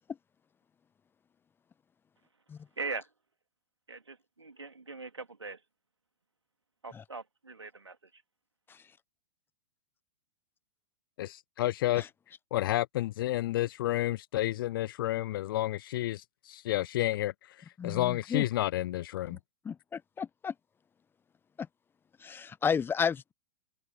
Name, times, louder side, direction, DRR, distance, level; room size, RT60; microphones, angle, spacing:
voice 1, 2.8-3.1 3.9-5.6 6.8-8.2, right 4 dB, 85° right, 3.0 m, -41 dB
voice 2, 11.2-12.1 12.5-19.4, left 15 dB, 55° left, 0.4 m, -31 dB
voice 3, 17.8-18.4 19.3-19.4 19.6-20.5 21.6-21.7 22.2-23.3, left 6 dB, 15° left, 1.0 m, -32 dB
figure-of-eight pair, 105°, 14 cm